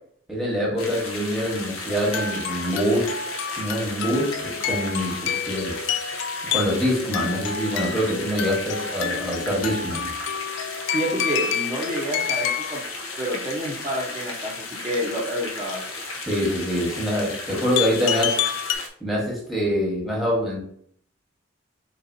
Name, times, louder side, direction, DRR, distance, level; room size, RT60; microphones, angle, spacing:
voice 1, 0.3-3.2 3.6-5.7 6.5-10.1 16.2-18.3 19.0-20.7, equal, ahead, -4 dB, 1.2 m, -25 dB
sound 1, 0.8-18.9, left 2 dB, 80° left, 0.8 m, -35 dB
sound 2, 1.9-12.9 17.8-18.8, left 8 dB, 60° left, 0.3 m, -29 dB
voice 2, 10.9-12.8 13.2-15.8, equal, 20° right, -6 dB, 0.6 m, -28 dB
4.2 x 3.9 x 2.6 m, 0.62 s
head